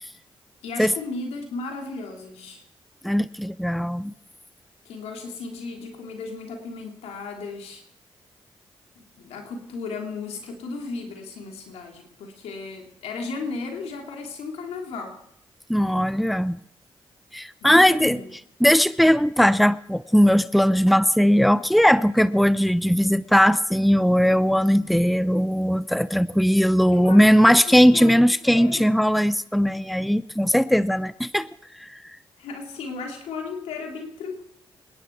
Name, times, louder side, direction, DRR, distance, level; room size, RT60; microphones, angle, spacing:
voice 1, 0.6-2.6 4.8-7.8 8.9-15.2 17.6-18.3 26.9-27.2 27.5-28.9 32.4-34.4, left 4 dB, 85° left, 3 dB, 3.1 m, -35 dB
voice 2, 3.0-4.1 15.7-16.6 17.3-18.2 18.6-31.5 31.8-32.0, equal, ahead, 17 dB, 0.7 m, -19 dB
26.5 x 10.5 x 4.7 m, 0.72 s
supercardioid pair, 45°, 10 cm